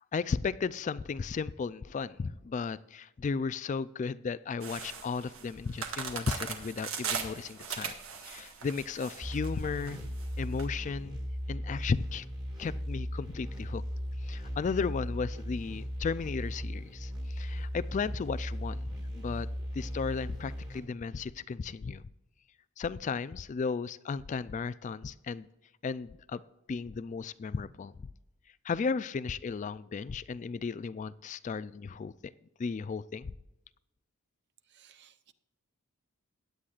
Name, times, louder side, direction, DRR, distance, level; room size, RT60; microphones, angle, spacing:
voice 1, 0.0-8.0 8.2-10.0 10.4-11.2 11.5-12.3 12.6-13.8 14.2-19.5 19.7-22.0 22.8-25.5 25.8-26.4 26.7-27.9 28.6-32.1 32.6-33.3, left 5 dB, 35° left, 16 dB, 0.3 m, -35 dB
sound 1, 4.6-10.6, right 6 dB, 70° right, 1.5 m, -39 dB
sound 2, 9.2-20.8, equal, 20° right, 1.8 m, -37 dB
voice 2, 34.7-35.3, right 10 dB, 55° right, 12 dB, 0.7 m, -60 dB
16.0 x 10.0 x 2.4 m, 0.93 s
head